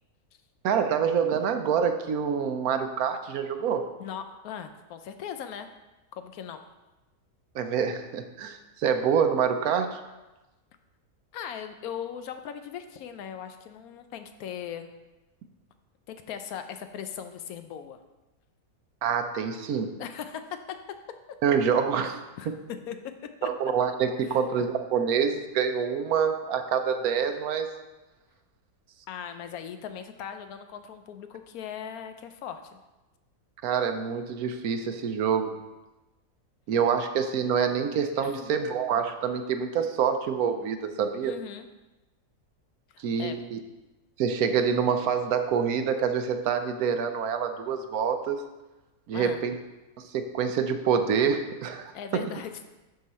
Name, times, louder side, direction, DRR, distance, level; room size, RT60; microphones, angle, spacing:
voice 1, 0.6-3.8 7.5-10.0 19.0-19.9 21.4-22.2 23.4-27.7 33.6-35.5 36.7-41.3 43.0-43.6 44.2-48.4 49.1-49.6 50.1-52.2, right 7 dB, 75° right, 7 dB, 1.1 m, -26 dB
voice 2, 4.0-5.7 6.1-6.6 11.3-14.9 16.1-18.0 20.0-20.6 22.4-23.0 23.4-23.5 24.2-24.4 29.1-32.8 38.2-38.5 41.2-41.7 42.9-43.4 49.1-49.4 51.9-52.5, left 8 dB, 75° left, 8 dB, 1.1 m, -39 dB
11.5 x 3.9 x 4.2 m, 1.1 s
omnidirectional pair, 1.6 m